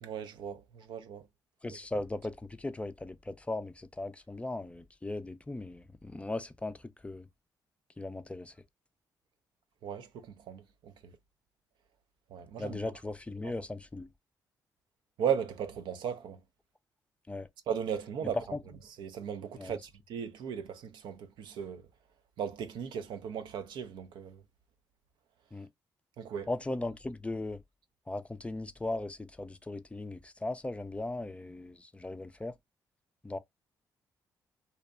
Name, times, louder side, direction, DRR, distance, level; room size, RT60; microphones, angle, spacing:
voice 1, 0.0-1.3 1.7-1.8 9.8-10.9 12.3-12.8 13.4-13.5 15.2-16.4 17.7-18.4 19.0-21.8 22.4-24.4 26.2-26.5, right 8 dB, 75° right, 0.4 m, -36 dB
voice 2, 1.6-6.8 7.0-7.3 8.0-8.5 12.6-14.1 17.3-17.5 18.5-18.6 19.6-19.8 25.5-25.7 26.5-27.6 28.1-32.6 33.2-33.4, left 2 dB, 15° left, 0.3 m, -38 dB
2.7 x 2.0 x 2.4 m
supercardioid pair, 60°, 8 cm